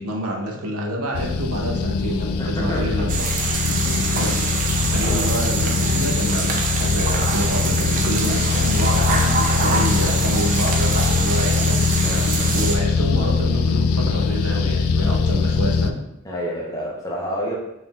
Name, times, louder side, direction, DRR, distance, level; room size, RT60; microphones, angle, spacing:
voice 1, 0.0-3.2 4.2-4.3 4.5-16.0, right 1 dB, 90° right, 1 dB, 0.7 m, -28 dB
sound 1, 1.1-15.9, left 4 dB, 75° left, 0.3 m, -22 dB
voice 2, 2.4-2.8 3.7-4.3 4.8-5.2 12.0-12.2 16.2-17.6, equal, 15° left, -4 dB, 0.9 m, -29 dB
sound 2, 3.1-12.8, right 4 dB, 40° right, 0.5 m, -25 dB
4.0 x 3.6 x 2.4 m, 0.82 s
head